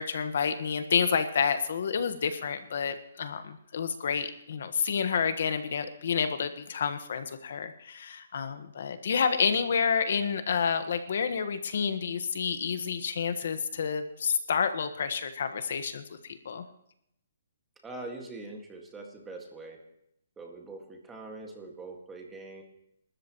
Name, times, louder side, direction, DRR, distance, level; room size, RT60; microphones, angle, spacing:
voice 1, 0.0-16.6, left 6 dB, 55° left, 9 dB, 1.3 m, -29 dB
voice 2, 17.8-19.8 20.4-22.6, right 2 dB, 5° right, 1 dB, 1.9 m, -43 dB
27.5 x 13.5 x 3.1 m, 0.76 s
hypercardioid pair, 170°, 0 cm